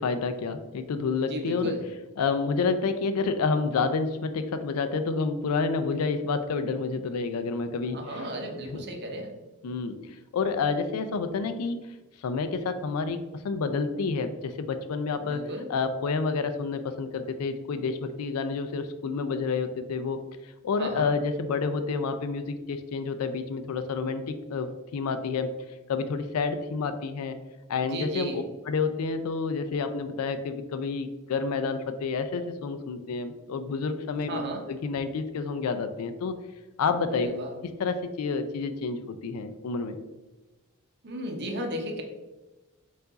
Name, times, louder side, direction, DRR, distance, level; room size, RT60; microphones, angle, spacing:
voice 1, 0.0-1.8 2.2-8.3 8.7-8.8 9.6-10.0 10.3-11.8 12.2-20.2 20.6-25.5 25.9-27.4 27.7-34.4 34.7-36.4 36.8-37.3 37.6-40.0, left 4 dB, 80° left, 9 dB, 0.4 m, -29 dB
voice 2, 1.3-1.8 7.9-9.3 15.2-15.7 20.8-21.1 27.8-28.4 34.2-34.6 37.1-37.5 41.0-42.0, right 1 dB, 50° right, 3 dB, 0.7 m, -35 dB
4.6 x 2.5 x 3.9 m, 1.1 s
head